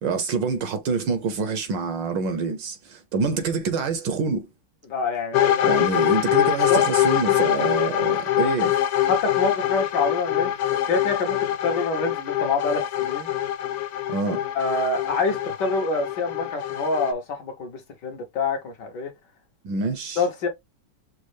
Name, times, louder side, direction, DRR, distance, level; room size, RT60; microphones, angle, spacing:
voice 1, 0.0-4.5 5.6-8.8 14.1-14.4 19.6-20.2, right 4 dB, 70° right, 1.2 m, -26 dB
voice 2, 4.9-5.8 6.5-6.8 7.6-7.7 9.1-13.3 14.5-19.1 20.2-20.5, left 3 dB, 65° left, 1.3 m, -26 dB
sound 1, 5.3-17.1, left 12 dB, 90° left, 1.7 m, -24 dB
6.3 x 2.3 x 3.2 m
omnidirectional pair, 2.4 m